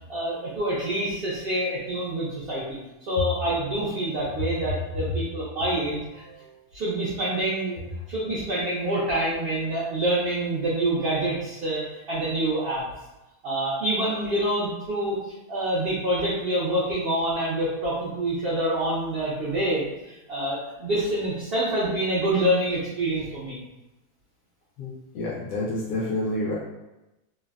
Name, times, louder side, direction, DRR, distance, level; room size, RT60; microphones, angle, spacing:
voice 1, 0.1-2.8 3.1-6.4 6.7-7.8 8.1-12.8 13.4-15.2 15.5-23.6, right 1 dB, 60° right, -8 dB, 0.6 m, -26 dB
voice 2, 24.8-26.5, left 2 dB, 70° left, -6 dB, 1.0 m, -29 dB
3.2 x 2.0 x 2.3 m, 0.99 s
omnidirectional pair, 1.7 m